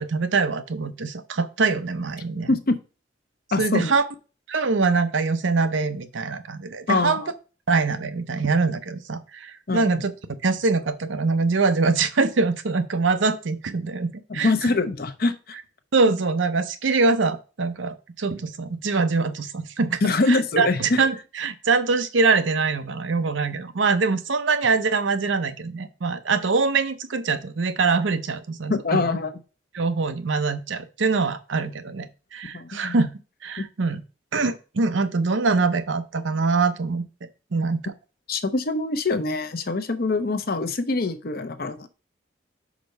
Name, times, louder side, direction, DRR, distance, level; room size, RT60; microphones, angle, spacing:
voice 1, 0.0-2.5 3.6-4.0 4.5-7.2 7.7-10.1 10.4-14.7 15.9-20.0 20.3-29.1 29.7-33.1 33.4-34.0 34.3-37.0 37.5-37.8, right 4 dB, 90° right, 10 dB, 0.7 m, -23 dB
voice 2, 2.5-2.8 3.5-3.9 6.9-7.2 9.7-9.9 14.3-15.6 20.0-21.0 28.7-29.4 32.5-33.0 33.6-33.7 38.3-41.9, left 3 dB, 55° left, 9 dB, 0.8 m, -24 dB
5.2 x 4.4 x 5.3 m, 0.33 s
head